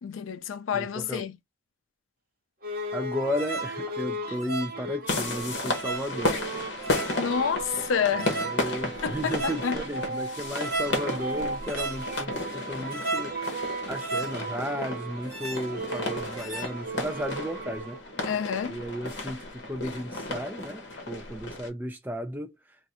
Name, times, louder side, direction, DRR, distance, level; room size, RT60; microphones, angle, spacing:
voice 1, 0.0-1.4 7.2-8.5 9.0-9.8 18.2-18.8, left 7 dB, 80° left, 0.4 m, -29 dB
voice 2, 0.7-1.2 2.9-6.3 8.2-18.0 18.7-22.5, equal, 10° right, 0.4 m, -34 dB
sound 1, 2.6-18.0, right 2 dB, 45° right, 0.9 m, -35 dB
sound 2, 5.1-21.7, left 2 dB, 55° left, 0.9 m, -34 dB
2.5 x 2.4 x 4.1 m
head